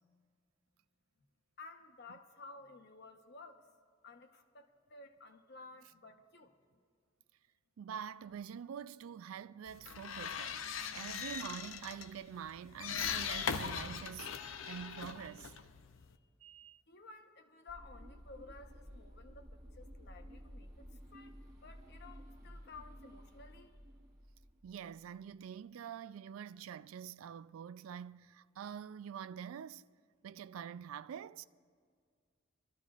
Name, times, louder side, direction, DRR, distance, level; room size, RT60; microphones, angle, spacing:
voice 1, 1.6-3.7 4.0-6.6 16.0-16.2 16.9-21.3 21.6-23.7, left 3 dB, 55° left, 0.9 m, -54 dB
voice 2, 7.8-14.3 14.7-15.5 16.4-16.8 24.6-29.8 30.2-31.5, right 8 dB, 90° right, 0.3 m, -46 dB
sound 1, 9.7-16.2, left 7 dB, 75° left, 0.6 m, -40 dB
sound 2, 17.7-25.1, equal, 40° right, 1.3 m, -54 dB
26.5 x 13.5 x 2.4 m
head